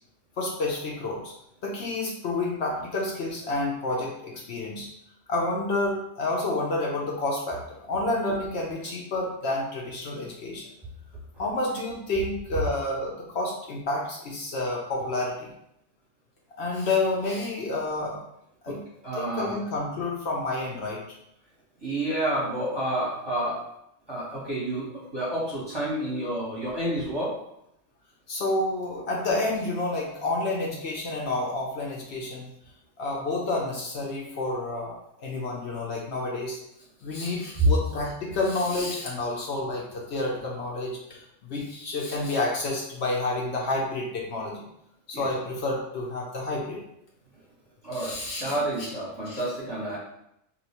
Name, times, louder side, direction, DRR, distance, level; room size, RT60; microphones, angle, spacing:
voice 1, 0.4-1.3 1.6-4.9 5.3-10.7 11.4-15.5 16.6-18.2 18.6-18.8 19.1-21.0 28.3-32.5 33.0-36.6 37.0-44.7 45.1-46.8 47.9-48.6 49.2-49.4, left 2 dB, 60° left, -2 dB, 0.9 m, -29 dB
voice 2, 19.0-19.5 21.8-23.6 24.1-27.3 37.6-37.7 45.1-45.3 47.8-50.0, right 1 dB, 20° right, -7 dB, 1.0 m, -29 dB
2.9 x 2.3 x 4.2 m, 0.78 s
omnidirectional pair, 1.3 m